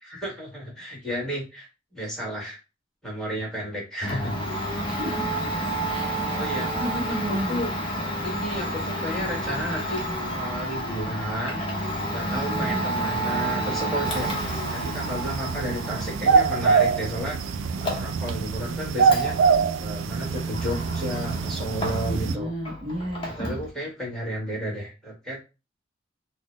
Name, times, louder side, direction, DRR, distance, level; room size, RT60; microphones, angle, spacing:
voice 1, 0.0-2.6 3.0-4.3 6.1-6.7 7.1-7.2 7.5-7.7 8.2-10.0 10.3-11.6 12.1-14.3 14.7-17.4 17.8-19.4 19.8-22.5 23.4-25.5, equal, 5° left, -3 dB, 1.4 m, -32 dB
Domestic sounds home sounds, 4.0-22.3 22.6-23.7, right 1 dB, 30° left, 0.8 m, -31 dB
voice 2, 4.8-5.4 5.9-6.4 6.8-7.6 12.3-12.9 22.1-23.3, equal, 30° right, -3 dB, 0.6 m, -32 dB
sound 1, 14.0-22.4, right 5 dB, 90° right, 0.3 m, -25 dB
3.9 x 2.1 x 2.9 m, 0.29 s
head